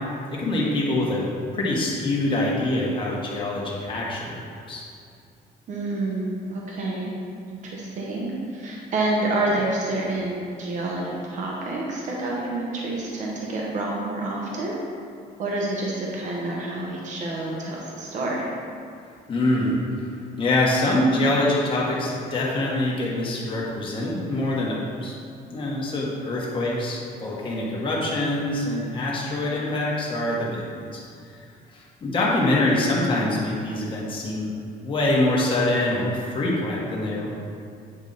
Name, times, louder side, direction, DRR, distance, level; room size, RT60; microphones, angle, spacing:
voice 1, 0.3-4.8 19.3-19.8 20.4-25.1 25.5-31.0 31.7-37.3, left 1 dB, 30° left, -4 dB, 1.4 m, -25 dB
voice 2, 5.7-7.1 7.5-14.8 15.4-18.4, right 2 dB, 45° right, -3 dB, 1.1 m, -28 dB
9.0 x 4.9 x 4.0 m, 2.4 s
cardioid pair, 170°, 17 cm